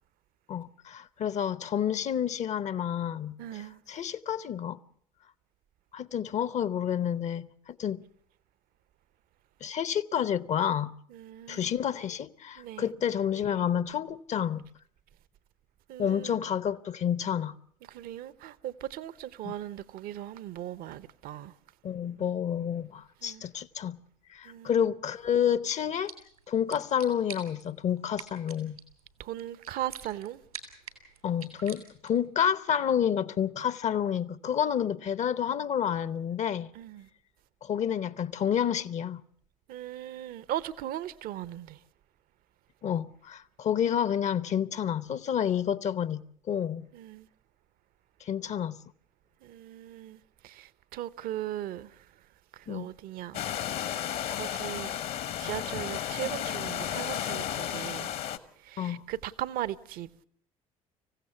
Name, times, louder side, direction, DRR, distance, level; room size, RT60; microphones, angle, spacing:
voice 1, 0.5-4.8 5.9-8.0 9.6-10.9 11.5-14.6 16.0-17.5 19.4-19.5 21.8-24.0 24.3-26.1 26.5-28.8 31.2-36.7 37.6-39.2 42.8-46.9 48.2-48.8 52.7-52.9 58.8-59.0, left 9 dB, 40° left, 0.8 m, -29 dB
voice 2, 3.4-3.8 11.1-11.7 12.6-12.9 15.9-16.5 17.9-21.5 23.2-23.5 24.4-24.9 29.2-30.4 36.7-37.1 39.7-41.8 46.9-47.3 49.4-52.1 52.5-53.4 54.3-54.9 55.4-58.1 58.6-60.1, right 12 dB, 55° right, 0.8 m, -38 dB
sound 1, 25.8-32.3, right 7 dB, 90° right, 3.1 m, -48 dB
sound 2, 53.3-58.4, left 10 dB, 55° left, 1.2 m, -33 dB
25.5 x 16.0 x 7.0 m
figure-of-eight pair, 55°, 18 cm